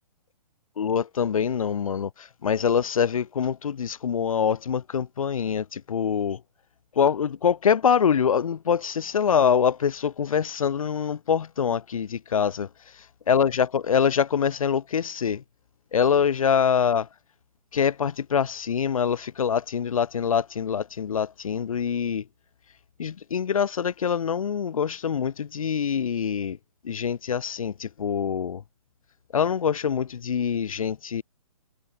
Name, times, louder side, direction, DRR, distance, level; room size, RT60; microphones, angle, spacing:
voice 1, 0.8-6.4 6.9-12.7 13.3-15.4 15.9-17.1 17.7-22.3 23.0-26.6 26.8-28.6 29.3-31.2, left 7 dB, 65° left, 1.4 m, -24 dB
hypercardioid pair, 170°, 19 cm